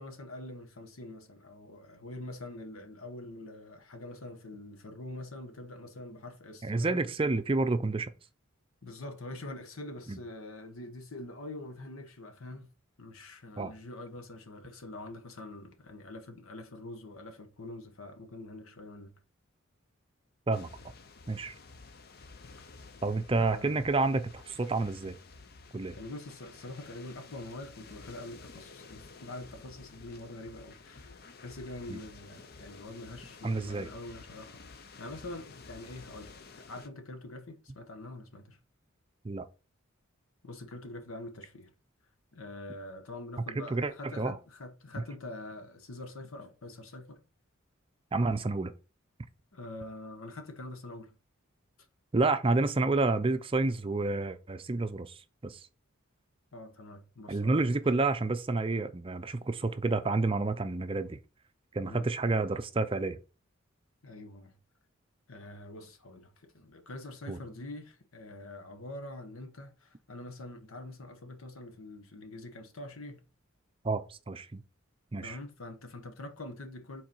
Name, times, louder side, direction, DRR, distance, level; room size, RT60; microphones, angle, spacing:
voice 1, 0.0-7.0 8.8-19.1 23.3-23.8 25.9-34.6 35.0-38.6 40.4-41.7 42.3-47.2 49.5-51.1 56.5-57.6 61.8-62.1 64.0-64.5 65.3-73.2 75.2-77.0, left 2 dB, 90° left, 1.1 m, -45 dB
voice 2, 6.6-8.1 10.1-10.2 13.6-13.7 20.5-20.7 21.3-21.5 23.0-25.2 25.7-25.9 31.9-32.0 33.4-33.9 39.2-39.5 43.6-44.4 48.1-48.7 52.1-55.6 57.3-61.2 61.7-63.2 67.3-67.4 73.8-74.6 75.1-75.4, right 3 dB, 25° right, 0.5 m, -29 dB
sound 1, 20.5-36.9, left 4 dB, 50° left, 0.6 m, -52 dB
5.3 x 3.9 x 5.5 m
head